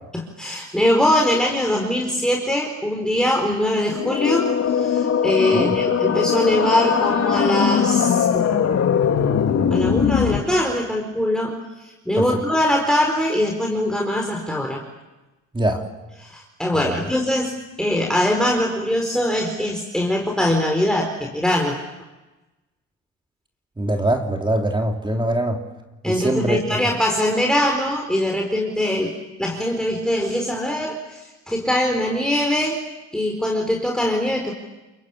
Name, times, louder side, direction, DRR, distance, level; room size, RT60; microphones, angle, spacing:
voice 1, 0.1-8.5 9.7-14.8 16.2-21.8 26.0-29.1 29.4-32.8 33.1-34.5, left 1 dB, ahead, 1 dB, 4.5 m, -22 dB
sound 1, 3.9-10.4, left 7 dB, 55° left, 2.5 m, -20 dB
voice 2, 23.8-25.6 26.0-26.6, right 1 dB, 15° right, 2 dB, 3.4 m, -22 dB
29.5 x 22.0 x 8.6 m, 1.1 s
cardioid pair, 90°, 30 cm